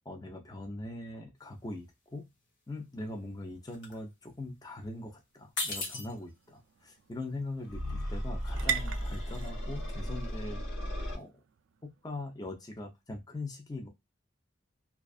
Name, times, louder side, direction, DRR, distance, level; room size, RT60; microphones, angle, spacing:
voice 1, 0.1-2.3 2.7-10.6 11.1-11.3 12.0-13.9, left 2 dB, 20° left, 3 dB, 0.4 m, -41 dB
sound 1, 1.4-1.6 1.9-2.5 2.9-5.1 5.4-10.4, left 3 dB, 60° left, 0.8 m, -41 dB
sound 2, 5.1-12.9, right 7 dB, 75° right, 0.3 m, -43 dB
sound 3, 7.6-11.2, equal, 90° left, 1.0 m, -35 dB
2.5 x 2.3 x 2.3 m, 0.21 s
head